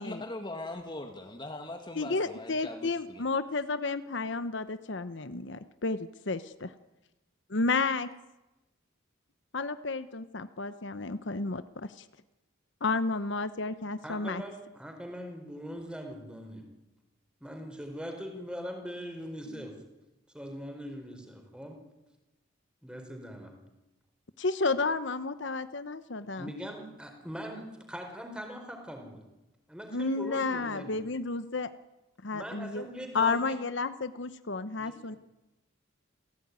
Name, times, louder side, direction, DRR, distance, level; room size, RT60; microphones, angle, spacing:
voice 1, 0.0-3.2, left 2 dB, 25° left, 4 dB, 1.9 m, -41 dB
voice 2, 1.9-6.7 7.5-8.1 9.5-12.1 12.8-14.4 24.4-26.5 29.9-31.7 32.2-32.8 33.1-35.2, left 3 dB, 60° left, 12 dB, 0.9 m, -31 dB
voice 3, 14.0-16.7 17.4-19.7 20.3-21.8 22.8-23.5 26.4-29.3 29.7-31.0 32.3-33.6 34.8-35.2, equal, 5° right, 4 dB, 4.6 m, -41 dB
28.0 x 16.5 x 9.6 m, 1.0 s
head